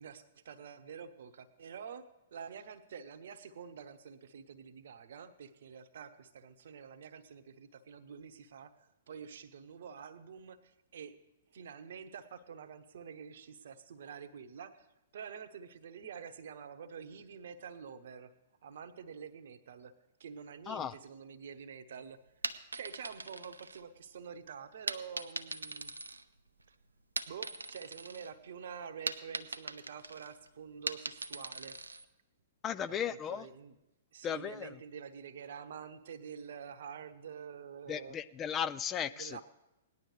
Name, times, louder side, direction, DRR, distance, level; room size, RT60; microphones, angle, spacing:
voice 1, 0.0-11.1 11.5-14.9 15.1-18.3 18.6-19.9 20.2-22.2 22.7-25.9 27.3-31.8 33.0-33.8 34.1-38.2 39.1-39.4, right 7 dB, 55° right, 10 dB, 0.9 m, -47 dB
voice 2, 20.7-21.0 32.6-33.5 34.2-34.7 37.9-39.4, left 8 dB, 20° left, 14 dB, 0.4 m, -36 dB
sound 1, 22.3-24.2 24.9-26.7 27.0-28.3 28.6-32.1, right 3 dB, 80° right, 0.6 m, -41 dB
18.5 x 11.0 x 3.2 m, 0.95 s
figure-of-eight pair, 115°, 0 cm